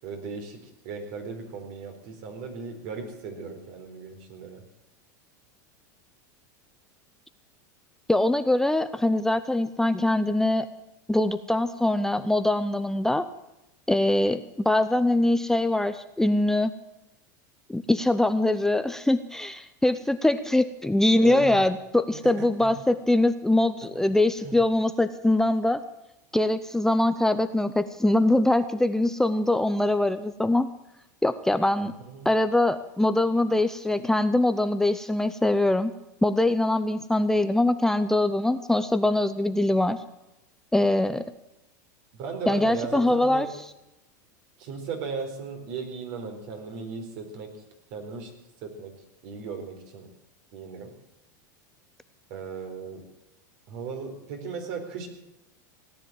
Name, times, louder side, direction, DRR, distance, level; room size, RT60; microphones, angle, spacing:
voice 1, 0.0-4.6 21.1-21.6 22.1-22.3 22.6-22.7 24.4-24.6 31.8-32.3 42.1-43.5 44.6-47.5 47.9-48.3 48.6-48.9 49.2-50.1 50.5-50.9 52.3-53.0 53.7-55.1, right 5 dB, 60° right, 4 dB, 4.3 m, -36 dB
voice 2, 8.1-10.7 11.1-13.2 13.9-16.7 17.7-25.8 26.3-30.7 31.2-31.9 32.2-35.9 36.2-40.0 40.7-41.2 42.5-43.5, left 1 dB, 5° left, 10 dB, 0.6 m, -23 dB
17.5 x 10.0 x 7.6 m, 0.91 s
supercardioid pair, 115°, 10 cm